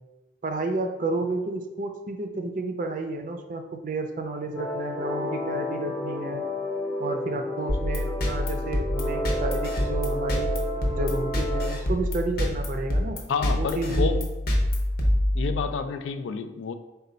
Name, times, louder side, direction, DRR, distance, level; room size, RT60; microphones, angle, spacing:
voice 1, 0.4-6.4 7.0-10.5 10.9-13.2 13.5-14.3, right 2 dB, 45° right, 5 dB, 0.4 m, -31 dB
sound 1, 4.5-11.7, left 1 dB, 10° left, 0.7 m, -31 dB
sound 2, 7.7-15.9, left 1 dB, 55° left, 0.7 m, -27 dB
voice 2, 13.3-14.2 15.3-16.7, left 5 dB, 90° left, 10 dB, 0.3 m, -29 dB
4.2 x 2.2 x 3.9 m, 1.1 s
head